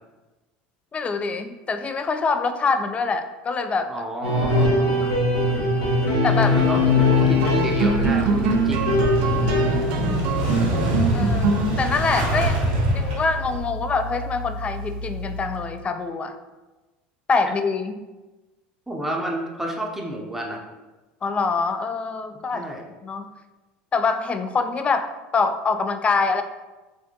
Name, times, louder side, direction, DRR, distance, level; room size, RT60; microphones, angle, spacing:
voice 1, 0.9-3.9 4.7-5.1 6.2-6.5 9.4-10.2 11.1-12.7 12.9-16.4 17.3-17.9 21.2-22.6 23.0-23.2 23.9-26.4, left 4 dB, 25° left, 8 dB, 0.3 m, -25 dB
voice 2, 3.9-5.0 6.3-8.9 18.9-20.6 22.5-22.8, right 1 dB, 5° right, 0 dB, 0.7 m, -30 dB
sound 1, 4.2-9.8, left 2 dB, 75° left, 0.9 m, -21 dB
sound 2, 6.2-15.8, right 3 dB, 65° right, 0.4 m, -27 dB
Motorcycle / Engine starting, 7.7-13.6, right 1 dB, 85° right, 1.4 m, -25 dB
4.3 x 2.1 x 2.9 m, 1.2 s
hypercardioid pair, 90°, 5 cm